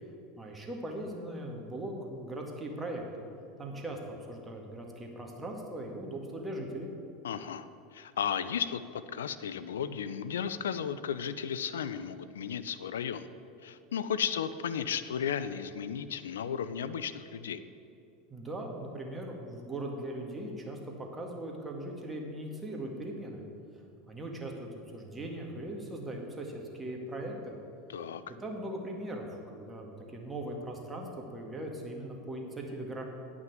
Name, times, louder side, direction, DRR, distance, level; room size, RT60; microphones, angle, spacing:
voice 1, 0.4-3.3 3.6-6.9 18.3-23.4 24.1-27.5 28.4-33.0, right 1 dB, 15° right, 1 dB, 1.9 m, -39 dB
voice 2, 7.2-7.7 7.9-8.8 9.1-13.3 13.6-17.6 27.9-28.2, left 8 dB, 80° left, 13 dB, 0.4 m, -34 dB
9.2 x 6.0 x 7.8 m, 2.6 s
hypercardioid pair, 85°, 0 cm